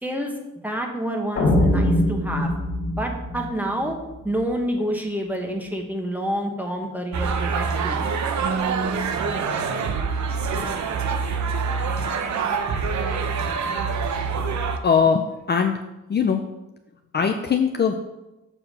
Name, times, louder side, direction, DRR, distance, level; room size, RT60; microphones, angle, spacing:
voice 1, 0.0-0.3 0.6-2.5 2.9-3.9 4.2-8.1, equal, 5° right, 2 dB, 1.2 m, -28 dB
sound 1, 1.4-4.5, left 1 dB, 50° left, 1.8 m, -23 dB
sound 2, 7.1-14.8, right 5 dB, 70° right, 0.8 m, -25 dB
voice 2, 14.8-15.7 16.1-16.4 17.1-17.9, left 6 dB, 35° left, 4 dB, 0.5 m, -20 dB
7.2 x 4.7 x 6.6 m, 0.98 s
wide cardioid pair, 140°, 30 cm